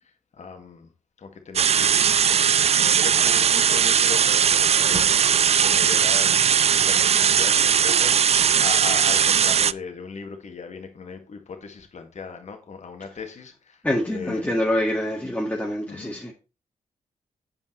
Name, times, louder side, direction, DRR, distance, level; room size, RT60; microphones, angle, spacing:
voice 1, 0.4-0.9 1.2-14.6 15.9-16.2, left 5 dB, 60° left, 2.0 m, -38 dB
sound 1, 1.6-9.7, right 8 dB, 50° right, 0.4 m, -19 dB
voice 2, 13.8-16.3, left 1 dB, 10° left, 1.8 m, -25 dB
7.5 x 5.5 x 4.3 m
cardioid pair, 50°, 14 cm